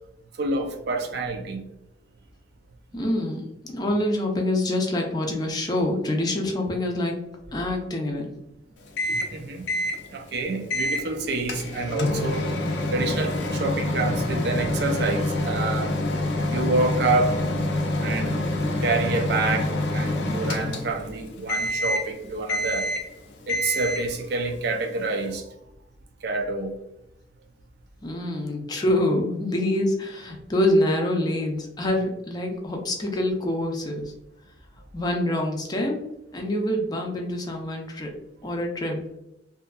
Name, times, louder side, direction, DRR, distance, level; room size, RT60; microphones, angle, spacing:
voice 1, 0.4-1.6 9.1-9.7 10.1-12.5 12.9-16.0 16.5-17.5 18.0-18.5 18.8-22.9 23.5-25.6 26.2-26.7, right 3 dB, 65° right, 0.4 m, -27 dB
voice 2, 2.9-7.2 7.5-8.3 28.0-34.1 34.9-36.1 36.3-38.1 38.4-39.0, left 1 dB, 25° left, 0.4 m, -26 dB
Microwave oven, 9.0-9.4 9.7-10.0 10.7-11.1 11.5-21.1 21.5-22.1 22.5-23.1 23.5-24.1, left 1 dB, 80° left, 0.5 m, -26 dB
2.7 x 2.4 x 2.2 m
head